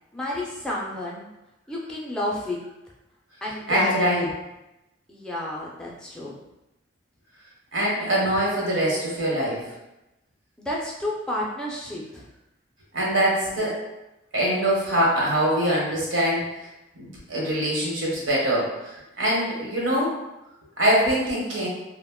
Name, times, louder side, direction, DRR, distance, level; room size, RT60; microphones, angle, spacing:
voice 1, 0.1-1.3 1.7-2.6 3.4-4.3 5.1-6.4 10.6-12.3, left 1 dB, 5° left, -5 dB, 0.4 m, -30 dB
voice 2, 3.7-4.3 7.7-9.6 12.9-13.8 14.3-16.5 17.0-20.1 20.8-21.7, right 1 dB, 75° right, -4 dB, 1.0 m, -23 dB
2.4 x 2.1 x 3.6 m, 0.94 s
head